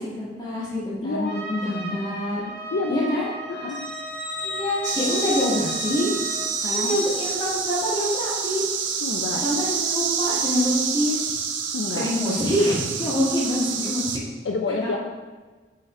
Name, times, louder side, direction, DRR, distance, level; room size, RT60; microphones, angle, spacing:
voice 1, 0.0-2.5 2.9-3.3 4.4-6.1 6.7-8.6 9.4-11.2 11.9-14.1 14.7-15.0, left 1 dB, 25° left, -7 dB, 1.9 m, -26 dB
voice 2, 1.0-1.4 2.7-3.8 6.6-7.0 9.0-9.5 11.7-12.1 14.4-15.0, left 3 dB, 75° left, 3 dB, 0.5 m, -28 dB
Trumpet, 1.2-6.5, right 2 dB, 35° right, 1.5 m, -36 dB
sound 1, 3.7-8.8 9.1-9.3, left 1 dB, ahead, 1.5 m, -34 dB
sound 2, 4.8-14.2, right 6 dB, 85° right, 0.6 m, -28 dB
5.1 x 4.9 x 4.2 m, 1.3 s
head